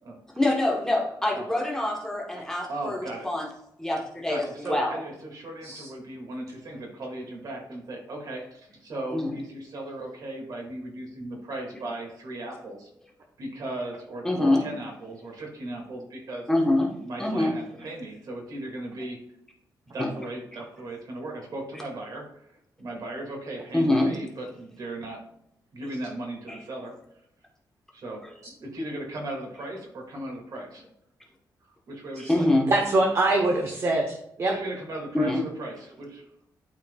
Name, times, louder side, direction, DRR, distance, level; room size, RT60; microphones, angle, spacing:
voice 1, 0.4-3.5 3.8-5.0 9.1-9.3 14.2-14.6 16.5-16.9 17.2-17.5 20.0-20.1 23.7-24.2 26.5-26.6 32.3-32.7 35.1-35.4, left 1 dB, 5° left, -2 dB, 1.0 m, -25 dB
voice 2, 2.7-3.3 4.3-12.9 13.4-16.4 17.0-19.2 19.9-25.2 25.7-26.9 27.9-30.8 31.9-32.5 34.5-36.1, right 1 dB, 55° right, 0 dB, 2.0 m, -37 dB
voice 3, 32.7-34.5, right 2 dB, 40° right, 1 dB, 0.9 m, -24 dB
12.0 x 4.5 x 2.3 m, 0.76 s
wide cardioid pair, 175°, 8 cm